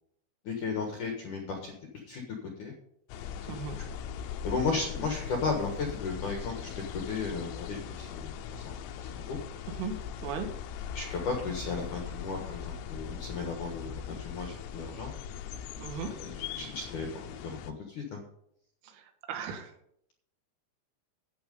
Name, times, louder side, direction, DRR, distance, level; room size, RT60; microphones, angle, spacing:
voice 1, 0.4-2.2 2.6-2.7 3.6-3.8 4.4-9.4 10.9-15.1 16.2-17.6 17.9-18.2, left 4 dB, 70° left, 2 dB, 2.0 m, -35 dB
sound 1, 3.1-17.7, left 8 dB, 90° left, 3.5 m, -40 dB
voice 2, 15.8-16.1 19.3-19.7, right 6 dB, 80° right, 6 dB, 3.9 m, -36 dB
11.5 x 8.6 x 5.3 m, 0.72 s
omnidirectional pair, 5.8 m